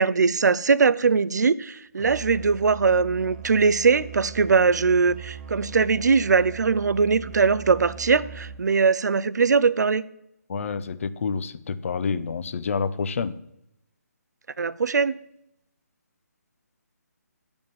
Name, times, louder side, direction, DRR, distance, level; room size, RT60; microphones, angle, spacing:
voice 1, 0.0-10.0 14.6-15.2, right 5 dB, 80° right, 0.4 m, -21 dB
Musical instrument, 2.0-8.8, right 8 dB, 35° right, 0.8 m, -40 dB
voice 2, 10.5-13.3, left 5 dB, 50° left, 0.5 m, -28 dB
9.0 x 5.2 x 7.3 m
figure-of-eight pair, 155°, 9 cm